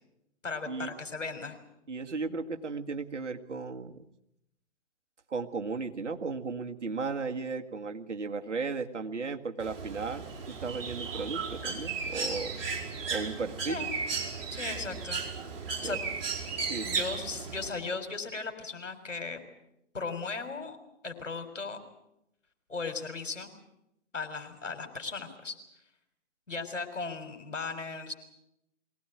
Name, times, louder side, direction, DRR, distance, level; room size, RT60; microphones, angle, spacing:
voice 1, 0.4-1.6 13.6-13.9 14.5-15.2 15.8-16.0 16.8-19.4 19.9-20.8 21.0-21.8 22.7-23.5 24.1-25.6 26.5-28.1, left 4 dB, 80° left, 6 dB, 4.2 m, -37 dB
voice 2, 1.9-4.1 5.3-12.6 13.1-13.9 15.8-16.0 16.6-17.0, right 4 dB, 70° right, 5 dB, 2.0 m, -35 dB
Bird, 9.6-17.7, right 5 dB, 50° right, 5.0 m, -35 dB
22.5 x 18.0 x 9.2 m, 0.84 s
figure-of-eight pair, 130°, 37 cm